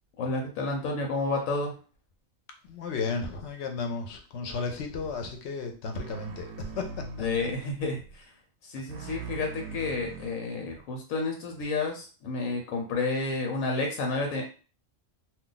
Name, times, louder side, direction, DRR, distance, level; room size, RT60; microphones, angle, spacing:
voice 1, 0.2-1.7 7.2-8.3 8.6-14.4, left 3 dB, 90° left, 2 dB, 1.1 m, -30 dB
voice 2, 2.7-7.3 9.0-9.1, left 4 dB, 65° left, 4 dB, 0.8 m, -34 dB
sound 1, 4.9-5.2 5.9-7.6 7.9-8.2 8.9-10.8 11.6-11.7, right 4 dB, 70° right, 0.8 m, -42 dB
2.3 x 2.3 x 3.8 m, 0.37 s
omnidirectional pair, 1.4 m